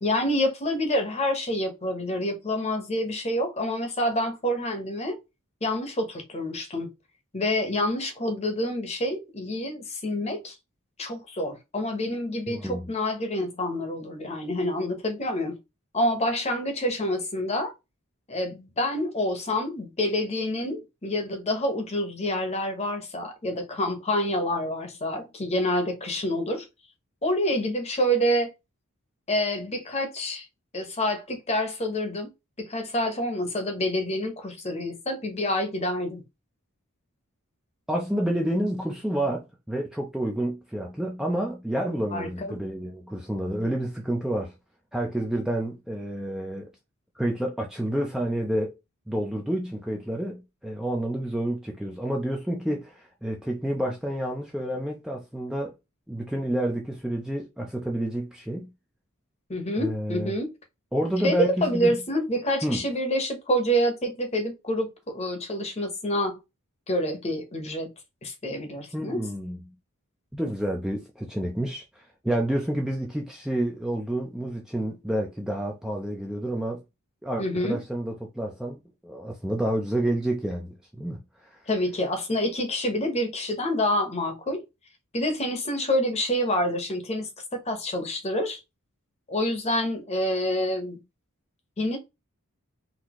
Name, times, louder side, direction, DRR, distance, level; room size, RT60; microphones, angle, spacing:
voice 1, 0.0-5.2 5.6-6.9 7.3-10.5 11.0-15.6 15.9-17.7 18.3-26.6 27.2-28.5 29.3-30.5 30.7-32.3 32.6-36.2 42.1-42.6 59.5-60.5 61.2-64.9 65.1-66.4 66.9-67.9 68.2-69.2 77.4-77.8 81.7-84.6 85.1-88.6 89.3-91.0 91.8-92.0, equal, 30° left, 0.9 m, -27 dB
voice 2, 12.5-12.9 37.9-44.5 44.9-46.7 47.2-48.7 49.1-55.7 56.1-58.7 59.8-60.3 60.9-62.0 62.6-62.8 68.9-69.7 70.3-76.8 77.2-81.6, right 1 dB, 5° right, 0.4 m, -29 dB
4.0 x 2.7 x 2.9 m
head